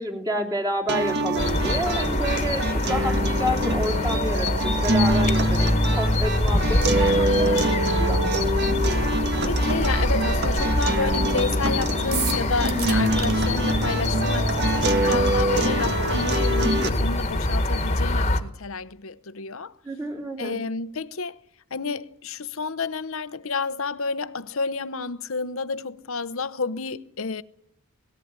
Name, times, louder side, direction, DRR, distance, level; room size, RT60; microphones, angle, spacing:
voice 1, 0.0-5.7 6.0-7.5 8.0-8.2 19.8-20.6, equal, 15° right, 3.3 m, -29 dB
sound 1, 0.9-16.9, right 1 dB, 50° right, 1.7 m, -25 dB
sound 2, 1.4-18.4, left 1 dB, 30° left, 1.6 m, -25 dB
voice 2, 7.0-7.7 8.9-9.1 9.4-19.7 20.4-21.4 21.7-27.4, left 4 dB, 65° left, 0.8 m, -30 dB
sound 3, 12.1-13.3, right 6 dB, 90° right, 3.0 m, -30 dB
18.5 x 17.5 x 9.6 m
head